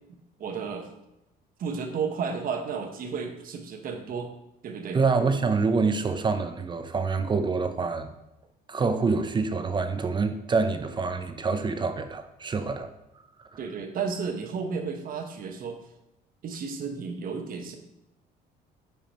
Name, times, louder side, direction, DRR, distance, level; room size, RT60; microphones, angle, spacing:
voice 1, 0.4-0.9 1.6-4.3 4.6-5.0 13.6-15.8 16.4-17.8, right 5 dB, 50° right, 5 dB, 1.1 m, -32 dB
voice 2, 4.9-8.1 8.7-12.9 13.5-13.6, right 4 dB, 25° right, 8 dB, 0.6 m, -26 dB
10.0 x 4.9 x 3.0 m, 0.88 s
cardioid pair, 120°, 18 cm